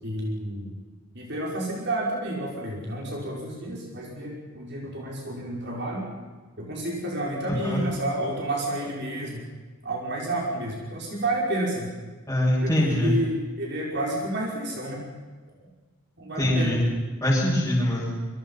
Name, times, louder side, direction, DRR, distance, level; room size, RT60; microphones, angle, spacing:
voice 1, 0.0-0.7 1.1-6.1 6.6-9.4 9.8-11.9 12.6-15.0 16.2-16.8, right 1 dB, 55° right, -2 dB, 5.8 m, -30 dB
voice 2, 12.3-13.1 16.4-16.8 17.2-18.1, left 1 dB, 15° left, -8 dB, 7.4 m, -23 dB
28.0 x 24.0 x 5.8 m, 1.3 s
head